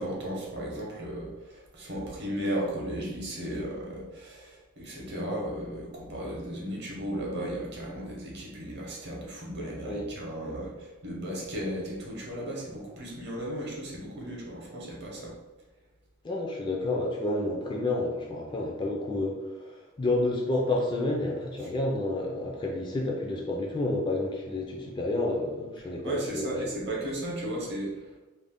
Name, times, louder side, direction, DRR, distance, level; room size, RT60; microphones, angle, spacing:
voice 1, 0.0-15.4 25.8-28.2, right 1 dB, 55° right, -2 dB, 0.8 m, -35 dB
voice 2, 16.2-26.5, left 2 dB, 25° left, -1 dB, 0.4 m, -30 dB
2.5 x 2.0 x 3.4 m, 1.1 s
head